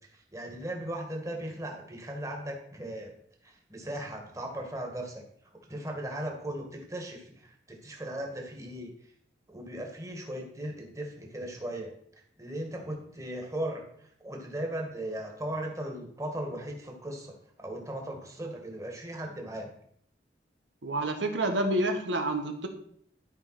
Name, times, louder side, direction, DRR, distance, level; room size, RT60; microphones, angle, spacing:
voice 1, 0.1-3.1 3.4-5.2 5.7-8.9 9.5-11.9 12.4-17.3 17.6-19.7, right 1 dB, 15° right, 1 dB, 2.0 m, -37 dB
voice 2, 20.8-22.7, right 1 dB, 85° right, 5 dB, 1.3 m, -28 dB
12.0 x 5.2 x 5.9 m, 0.66 s
head